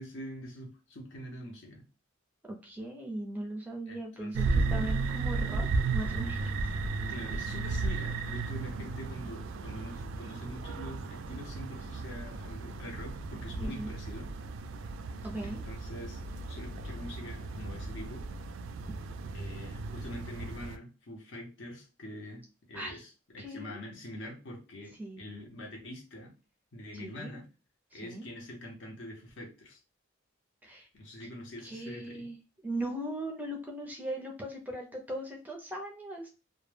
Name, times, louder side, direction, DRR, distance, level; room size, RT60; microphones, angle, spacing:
voice 1, 0.0-1.8 3.9-4.9 7.1-14.3 15.5-16.2 16.5-18.3 19.3-22.4 22.7-26.3 26.7-27.5 27.9-29.8 30.9-32.3, left 1 dB, 65° left, 1 dB, 0.7 m, -44 dB
voice 2, 2.5-6.6 13.6-13.9 15.2-15.6 22.7-23.0 23.4-23.8 25.0-25.2 27.0-27.3 27.9-28.3 30.6-30.9 31.6-32.4 32.6-36.3, right 1 dB, 10° right, 1 dB, 0.4 m, -39 dB
sound 1, 4.3-20.8, right 3 dB, 85° right, 0.3 m, -34 dB
2.2 x 2.0 x 3.2 m, 0.31 s
head